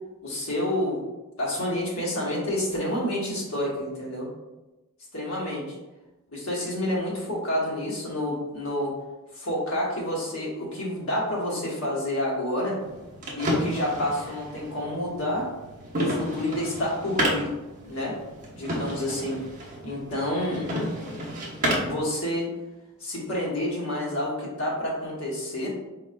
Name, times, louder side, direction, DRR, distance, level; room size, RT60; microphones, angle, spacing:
voice 1, 0.2-1.0 1.4-4.3 5.1-5.8 6.3-9.0 9.3-12.8 13.3-15.5 15.9-17.5 17.9-18.2 18.5-19.4 19.8-20.7 21.8-22.5 23.0-25.7, left 1 dB, 65° left, -4 dB, 1.4 m, -29 dB
sound 1, 12.8-22.0, equal, 35° right, 0.9 m, -31 dB
4.5 x 3.8 x 2.2 m, 1.1 s
head